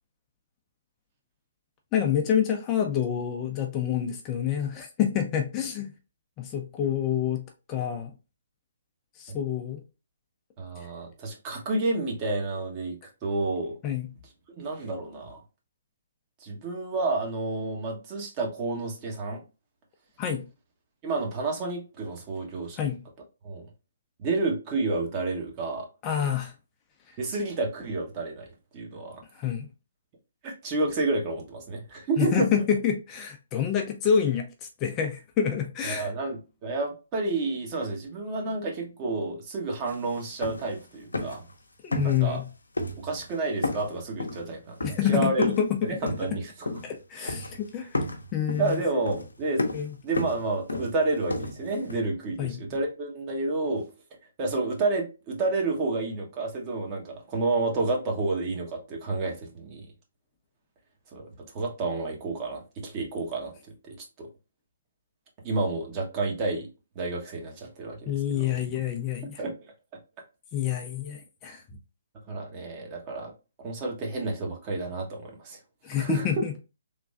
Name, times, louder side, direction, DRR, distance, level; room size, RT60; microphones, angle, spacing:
voice 1, 1.9-5.9 6.4-8.1 9.2-9.8 13.8-14.1 20.2-20.4 22.8-23.0 26.0-26.5 27.1-27.2 29.3-29.7 32.2-36.1 41.8-42.5 44.8-45.9 46.8-48.0 48.3-48.8 49.7-49.9 52.4-52.6 68.1-69.4 70.5-71.6 75.8-76.5, left 8 dB, 25° left, 0.6 m, -27 dB
voice 2, 10.6-13.7 14.5-15.4 16.4-19.4 21.0-22.8 23.4-23.7 24.2-25.9 27.2-28.5 28.7-29.2 30.4-32.5 35.8-41.4 42.0-42.4 43.0-44.8 45.1-45.5 45.8-46.7 47.2-47.4 48.6-49.6 50.0-53.9 54.4-59.9 61.1-61.3 61.5-63.5 63.9-64.3 65.4-66.7 66.9-68.5 69.4-69.6 72.3-73.3 73.6-75.6 76.0-76.3, right 3 dB, 30° right, 1.1 m, -30 dB
sound 1, 39.9-40.0 40.2-40.8 41.1-41.5 41.9-42.5 42.8-43.3 43.6-45.7 46.1-47.0 47.3-47.7 47.9-52.0, left 2 dB, 80° left, 0.7 m, -32 dB
3.5 x 3.0 x 2.4 m
figure-of-eight pair, 135°, 0 cm